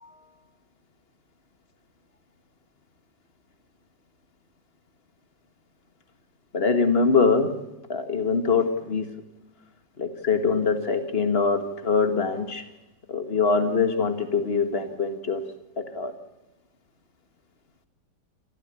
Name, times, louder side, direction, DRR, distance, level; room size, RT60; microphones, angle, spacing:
voice 1, 6.5-7.5 7.9-9.1 10.0-12.6 13.1-15.4 15.8-16.1, left 4 dB, 35° left, 8 dB, 1.9 m, -23 dB
27.0 x 13.5 x 8.4 m, 1.0 s
omnidirectional pair, 2.0 m